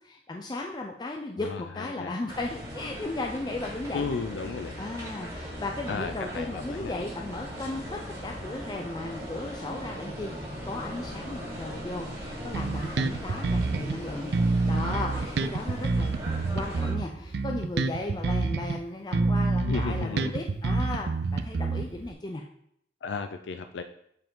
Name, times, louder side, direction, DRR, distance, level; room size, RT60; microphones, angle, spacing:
voice 1, 0.0-4.1 4.8-14.3 14.7-16.2 16.4-22.4, left 2 dB, 25° left, 1 dB, 0.4 m, -36 dB
voice 2, 1.4-2.1 3.9-4.8 5.9-6.9 19.6-20.3 23.0-23.8, left 5 dB, 85° left, 7 dB, 0.4 m, -34 dB
sound 1, 2.3-16.9, equal, 15° right, 1.9 m, -38 dB
Bass guitar, 12.5-14.0 14.3-18.8 19.1-22.1, right 3 dB, 70° right, 0.4 m, -27 dB
7.7 x 4.6 x 3.7 m, 0.71 s
head